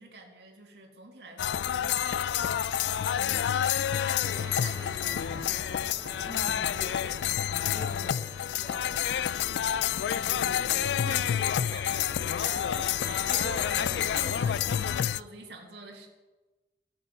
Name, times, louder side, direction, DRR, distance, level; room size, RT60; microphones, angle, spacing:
voice 1, 0.0-5.3 10.9-11.3 11.7-12.1 12.4-16.1, right 2 dB, 75° right, 0 dB, 1.8 m, -46 dB
sound 1, 1.4-15.2, left 10 dB, 80° left, 0.3 m, -28 dB
sound 2, 4.2-14.5, right 2 dB, 20° right, 0.7 m, -47 dB
voice 2, 6.2-7.2 7.7-9.6 10.1-10.9, left 1 dB, 50° left, 0 dB, 2.9 m, -45 dB
15.5 x 9.0 x 5.5 m, 1.2 s
head